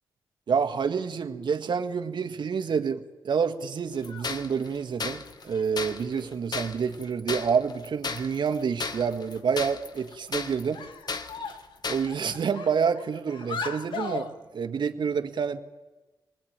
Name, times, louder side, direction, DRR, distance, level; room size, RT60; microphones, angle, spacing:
voice 1, 0.5-10.9 11.9-14.3 14.5-15.6, right 6 dB, 70° right, 7 dB, 1.7 m, -28 dB
sound 1, 3.9-4.4 5.5-6.4 7.5-7.6 8.0-8.1 8.5-8.6 8.9-9.5 10.1-10.3 10.7-11.8 12.1-14.3, left 4 dB, 80° left, 1.7 m, -38 dB
sound 2, 4.0-12.4, left 4 dB, 55° left, 1.5 m, -35 dB
26.5 x 19.5 x 8.9 m, 1.2 s
cardioid pair, 55°, 8 cm